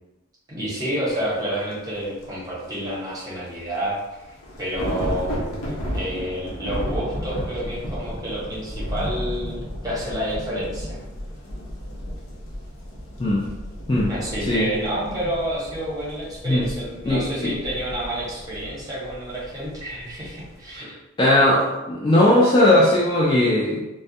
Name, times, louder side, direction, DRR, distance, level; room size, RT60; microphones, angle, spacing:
voice 1, 0.5-4.0 4.2-5.4 5.9-11.0 14.1-20.9, right 1 dB, 15° right, -7 dB, 0.8 m, -29 dB
sound 1, 1.7-1.8 2.2-2.3 3.8-3.9 4.1-20.8, equal, 85° left, 0.6 m, -33 dB
voice 2, 17.1-17.5 21.2-23.8, left 1 dB, 25° left, -5 dB, 0.3 m, -18 dB
2.2 x 2.0 x 2.7 m, 1.0 s
head